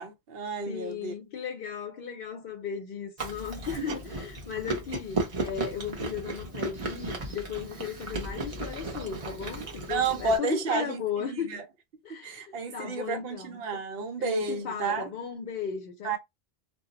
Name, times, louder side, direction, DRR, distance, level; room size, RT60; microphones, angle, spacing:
voice 1, 0.0-1.1 3.8-3.9 9.9-11.6 12.1-15.1 16.0-16.2, right 4 dB, 70° right, 0.8 m, -31 dB
voice 2, 0.7-11.5 12.0-13.6 14.2-16.2, left 7 dB, 65° left, 0.7 m, -36 dB
Chewing mastication, 3.2-10.4, right 2 dB, 40° right, 0.7 m, -35 dB
2.3 x 2.0 x 3.7 m
omnidirectional pair, 1.0 m